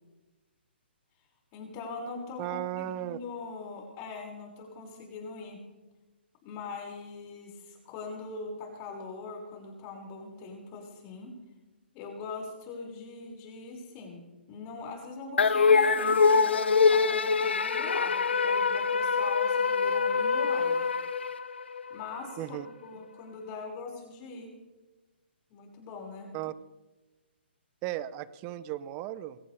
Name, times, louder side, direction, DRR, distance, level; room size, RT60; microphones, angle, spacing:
voice 1, 1.5-5.6 6.4-11.3 11.9-20.8 21.9-24.6 25.5-26.3, left 4 dB, 30° left, 0 dB, 6.2 m, -42 dB
voice 2, 2.4-3.2 22.4-22.7 26.3-26.5 27.8-29.4, right 14 dB, 25° right, 16 dB, 0.8 m, -35 dB
sound 1, 15.4-21.9, left 5 dB, 75° left, 1.2 m, -24 dB
22.0 x 18.0 x 3.5 m, 1.1 s
hypercardioid pair, 140°, 6 cm